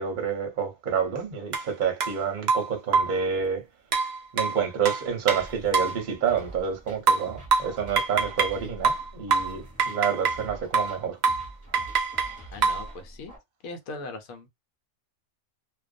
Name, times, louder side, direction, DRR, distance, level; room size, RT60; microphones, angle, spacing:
voice 1, 0.0-3.7 4.3-11.2, right 7 dB, 45° right, 0.7 m, -28 dB
sound 1, 1.5-1.7 2.0-2.1 2.5-3.2 3.9-6.0 7.1-8.6 8.8-10.5 10.7-11.0 11.2-11.5 11.7-12.9, right 5 dB, 75° right, 0.4 m, -25 dB
sound 2, 5.4-13.4, right 1 dB, 15° left, 1.0 m, -45 dB
voice 2, 12.5-13.3 13.6-14.5, left 3 dB, 75° left, 1.0 m, -39 dB
2.4 x 2.2 x 2.4 m
omnidirectional pair, 1.5 m